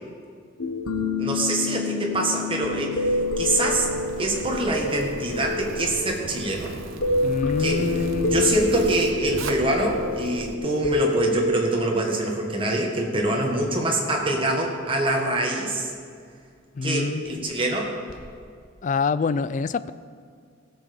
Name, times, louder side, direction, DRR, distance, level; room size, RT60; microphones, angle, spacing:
sound 1, 0.6-13.8 18.1-18.3, left 2 dB, 85° left, 1.2 m, -28 dB
voice 1, 1.2-3.9 4.2-6.7 7.6-7.9 8.3-15.9 16.8-17.9, right 1 dB, 25° right, 0 dB, 1.5 m, -25 dB
Zipper (clothing), 3.0-10.5, right 2 dB, 80° right, 0.9 m, -37 dB
voice 2, 7.2-8.6 16.7-17.5 18.8-19.9, left 4 dB, 40° left, 15 dB, 0.3 m, -26 dB
17.0 x 6.9 x 5.2 m, 2.2 s
head